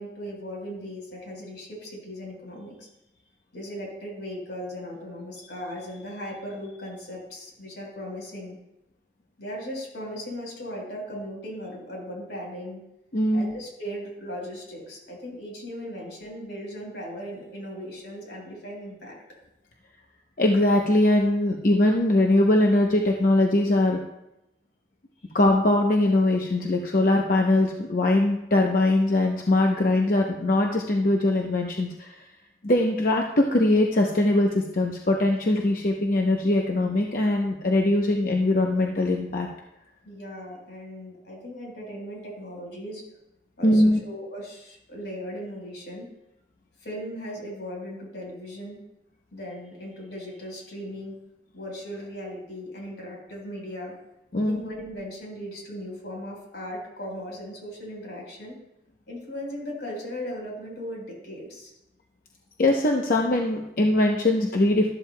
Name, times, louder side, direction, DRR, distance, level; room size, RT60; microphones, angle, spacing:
voice 1, 0.0-2.9 3.5-8.6 9.4-12.8 13.3-19.2 40.0-43.0 43.6-46.1 46.8-48.8 49.3-51.2 51.5-53.9 54.4-58.6 59.1-61.7, equal, 85° left, -1 dB, 4.3 m, -37 dB
voice 2, 13.1-13.5 20.4-24.0 25.3-32.1 32.6-39.5 43.6-44.0 54.3-54.6 62.6-64.9, left 1 dB, 50° left, 1 dB, 0.7 m, -21 dB
13.0 x 12.0 x 2.2 m, 0.87 s
head